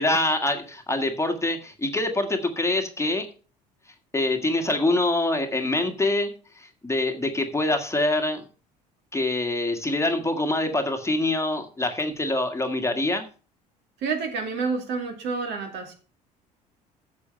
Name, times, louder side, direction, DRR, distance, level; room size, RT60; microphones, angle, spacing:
voice 1, 0.0-3.3 4.1-6.3 6.6-8.4 9.1-13.2, left 2 dB, 15° left, 5 dB, 1.6 m, -25 dB
voice 2, 14.0-15.9, right 4 dB, 55° right, 4 dB, 2.5 m, -29 dB
8.6 x 7.0 x 5.6 m, 0.37 s
hypercardioid pair, 65°, 21 cm